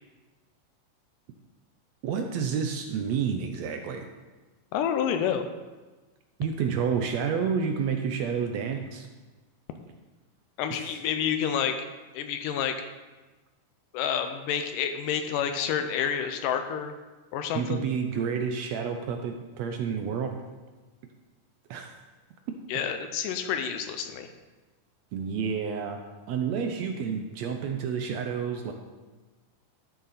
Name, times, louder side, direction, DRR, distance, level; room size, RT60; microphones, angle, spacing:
voice 1, 2.0-4.1 6.4-9.1 10.7-11.0 17.5-20.3 21.7-21.9 22.5-22.6 25.1-26.0 26.3-28.7, right 6 dB, 80° right, 4 dB, 1.6 m, -29 dB
voice 2, 4.7-5.5 10.6-11.8 12.1-12.8 13.9-16.9 17.3-17.9 22.7-24.3, left 8 dB, 85° left, 7 dB, 2.2 m, -29 dB
12.5 x 6.8 x 4.1 m, 1.2 s
omnidirectional pair, 3.7 m